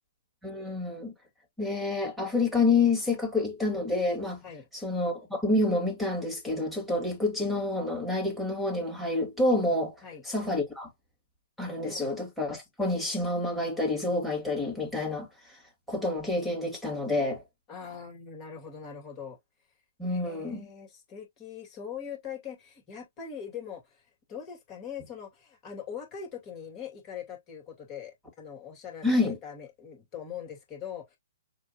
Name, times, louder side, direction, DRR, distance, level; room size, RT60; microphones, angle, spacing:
voice 1, 0.4-1.1 1.6-4.4 4.7-10.9 11.6-15.6 15.9-17.4 20.0-20.7 29.0-29.4, left 2 dB, ahead, 2.2 m, -28 dB
voice 2, 17.7-19.4 20.1-31.2, left 7 dB, 25° left, 2.3 m, -42 dB
6.5 x 2.7 x 2.9 m
figure-of-eight pair, 125°, 0 cm